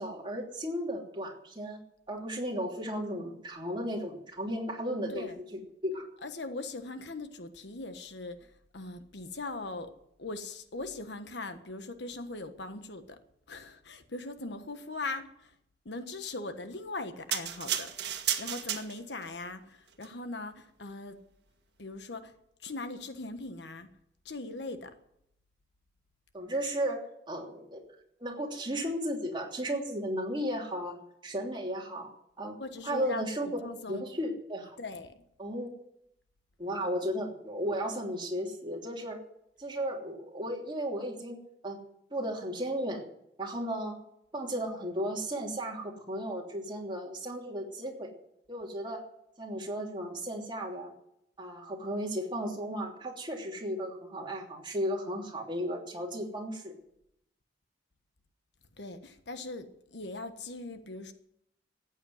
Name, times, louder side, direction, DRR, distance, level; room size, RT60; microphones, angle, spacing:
voice 1, 0.0-1.8 2.1-6.1 26.3-27.8 28.2-31.0 31.2-32.6 32.8-34.8 35.4-35.7 36.6-39.2 39.6-41.4 41.6-41.8 42.1-43.1 43.4-44.0 44.3-48.1 48.5-49.0 49.4-50.9 51.4-56.7, equal, 25° right, 0 dB, 3.1 m, -35 dB
voice 2, 6.2-8.4 8.7-9.9 10.2-13.2 13.5-15.5 15.8-17.9 18.4-21.2 21.8-22.3 22.6-23.9 24.2-24.9 32.6-33.3 33.6-34.0 34.8-35.1 58.8-61.1, left 2 dB, 70° left, 9 dB, 1.4 m, -40 dB
sound 1, 17.3-19.3 19.9-20.1, right 10 dB, 70° right, 1.7 m, -33 dB
14.5 x 9.2 x 9.6 m, 0.76 s
head